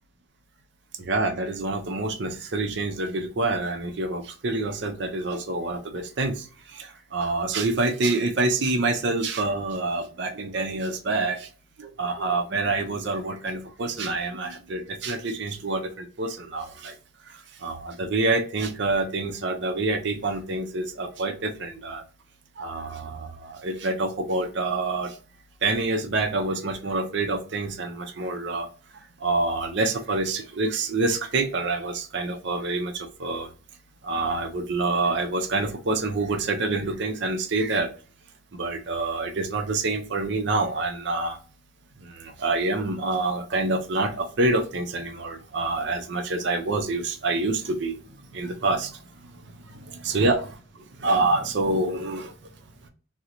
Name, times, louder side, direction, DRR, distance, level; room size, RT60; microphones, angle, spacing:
voice 1, 1.0-6.4 6.7-11.5 11.8-16.9 17.6-22.0 22.6-25.1 25.6-28.7 29.2-33.5 34.0-37.9 38.6-41.4 42.2-47.9 48.3-48.9 49.9-50.5 51.0-52.3, right 2 dB, 55° right, 6 dB, 0.5 m, -27 dB
3.8 x 2.1 x 2.8 m, 0.40 s
head